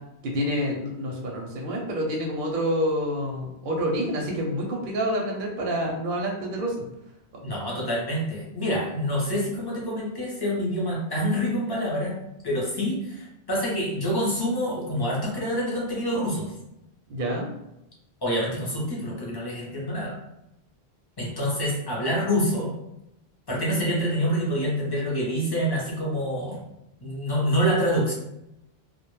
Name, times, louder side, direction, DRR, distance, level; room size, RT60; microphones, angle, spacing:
voice 1, 0.2-6.8 17.1-17.5, equal, 60° right, 0 dB, 0.6 m, -28 dB
voice 2, 7.4-12.1 12.4-16.5 18.2-20.2 21.2-22.7 23.5-26.6 27.0-28.1, equal, 25° left, -4 dB, 0.6 m, -26 dB
2.1 x 2.1 x 3.0 m, 0.85 s
omnidirectional pair, 1.1 m